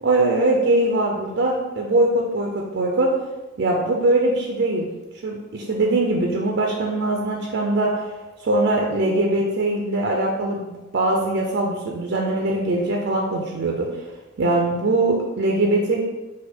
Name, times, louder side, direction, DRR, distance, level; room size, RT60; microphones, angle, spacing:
voice 1, 0.0-3.1 3.6-4.9 5.2-8.1 8.4-14.0 14.4-16.0, right 2 dB, 60° right, 0 dB, 0.5 m, -21 dB
4.2 x 2.4 x 4.3 m, 1.1 s
head